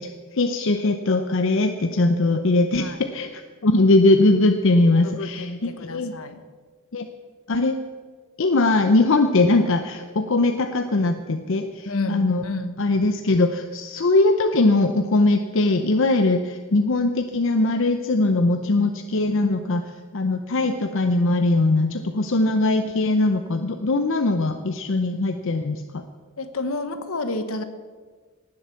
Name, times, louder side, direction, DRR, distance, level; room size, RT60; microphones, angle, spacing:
voice 1, 0.0-6.1 6.9-7.1 7.5-7.8 8.4-12.4 12.8-19.8 20.1-26.0, left 2 dB, 65° left, 7 dB, 0.7 m, -21 dB
voice 2, 5.0-6.4 11.8-12.7 26.4-27.6, left 2 dB, 80° left, 9 dB, 1.2 m, -30 dB
18.0 x 7.8 x 7.0 m, 1.5 s
head